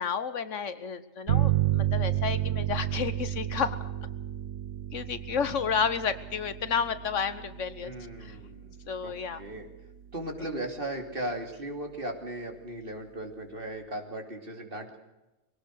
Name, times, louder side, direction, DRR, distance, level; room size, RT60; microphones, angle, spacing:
voice 1, 0.0-3.8 4.9-7.9 8.2-8.4 8.9-9.4, left 6 dB, 70° left, 13 dB, 1.4 m, -31 dB
sound 1, 1.3-10.6, right 13 dB, 85° right, 1.6 m, -32 dB
voice 2, 7.8-9.7 10.1-15.0, right 1 dB, 45° right, 4 dB, 3.0 m, -37 dB
23.0 x 18.0 x 6.5 m, 1.0 s
omnidirectional pair, 1.3 m